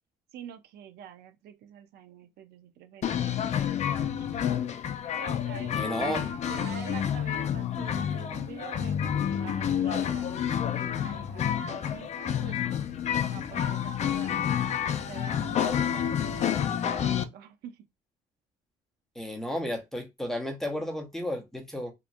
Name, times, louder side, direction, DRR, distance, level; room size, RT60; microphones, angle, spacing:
voice 1, 0.3-3.7 4.0-4.3 5.2-10.4 11.0-12.6 13.3-14.4 15.1-17.8, right 9 dB, 70° right, 0.6 m, -46 dB
sound 1, 3.0-17.2, left 9 dB, 40° left, 0.4 m, -29 dB
voice 2, 5.7-6.2 19.2-21.9, left 1 dB, ahead, 0.8 m, -33 dB
2.8 x 2.5 x 2.6 m
cardioid pair, 110°, 17 cm